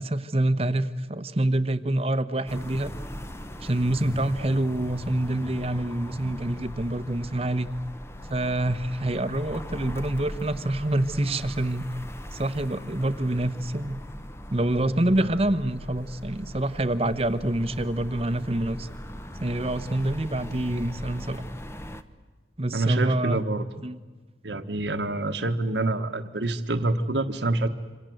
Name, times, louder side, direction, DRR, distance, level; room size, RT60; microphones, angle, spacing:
voice 1, 0.0-2.9 3.6-7.7 8.3-11.9 12.3-14.0 14.5-18.9 19.4-21.4 22.6-23.4 23.8-24.0, right 1 dB, 35° right, 12 dB, 1.0 m, -26 dB
sound 1, 2.5-22.0, equal, 15° left, 1.0 m, -40 dB
voice 2, 22.7-23.6 24.4-27.7, right 2 dB, 80° right, 9 dB, 1.4 m, -26 dB
27.0 x 26.5 x 7.8 m, 1.3 s
head